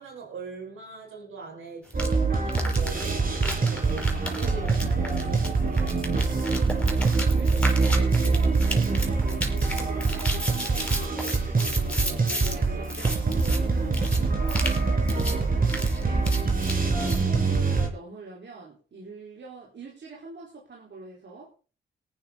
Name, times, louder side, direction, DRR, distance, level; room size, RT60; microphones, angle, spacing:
voice 1, 0.0-6.0, right 5 dB, 75° right, 0 dB, 5.5 m, -42 dB
sound 1, 1.9-2.1 2.5-12.6 12.8-13.6 13.9-14.2 14.5-14.8 15.1-15.4 15.7-17.2, equal, 5° left, 5.7 m, -33 dB
sound 2, 1.9-17.9, right 4 dB, 45° right, 4.6 m, -24 dB
voice 2, 6.8-16.6 16.9-21.5, right 3 dB, 60° right, -2 dB, 4.2 m, -43 dB
18.5 x 9.6 x 4.0 m, 0.36 s
supercardioid pair, 50°, 21 cm